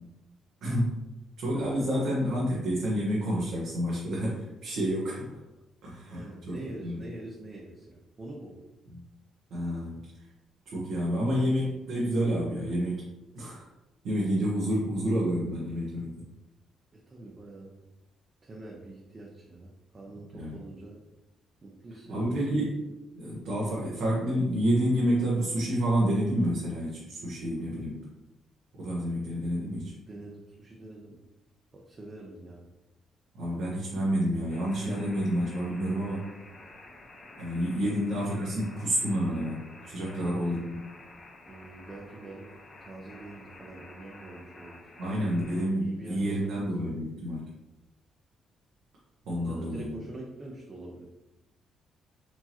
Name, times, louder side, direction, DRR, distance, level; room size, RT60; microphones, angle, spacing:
voice 1, 0.6-1.0 1.4-5.4 5.8-6.6 6.8-7.0 8.9-9.0 9.5-10.0 10.7-13.0 13.3-13.6 14.0-16.1 20.4-20.5 22.1-22.8 23.1-28.0 28.7-29.9 33.3-36.3 37.4-40.8 45.0-47.4 49.3-49.9, equal, 80° right, -6 dB, 1.1 m, -29 dB
voice 2, 6.1-8.6 17.1-17.7 18.4-21.0 21.6-22.3 30.1-31.2 31.7-32.7 40.0-40.6 41.5-42.5 42.8-45.3 45.7-46.7 49.4-51.1, right 2 dB, 35° right, -2 dB, 0.7 m, -45 dB
sound 1, 34.5-45.6, left 2 dB, 45° left, 1.0 m, -51 dB
4.5 x 2.9 x 2.9 m, 1.0 s
cardioid pair, 90°, 0 cm